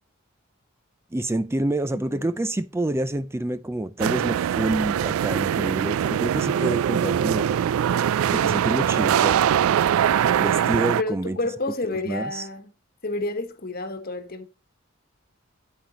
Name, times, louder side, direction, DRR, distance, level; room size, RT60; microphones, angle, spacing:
voice 1, 1.1-7.5 8.3-9.4 10.4-11.4 12.1-12.5, right 1 dB, 10° right, 0.4 m, -27 dB
voice 2, 1.9-2.3 11.0-12.7 13.0-14.5, left 2 dB, 45° left, 1.3 m, -30 dB
sound 1, 4.0-11.0, right 9 dB, 90° right, 0.3 m, -22 dB
9.1 x 8.9 x 3.0 m
head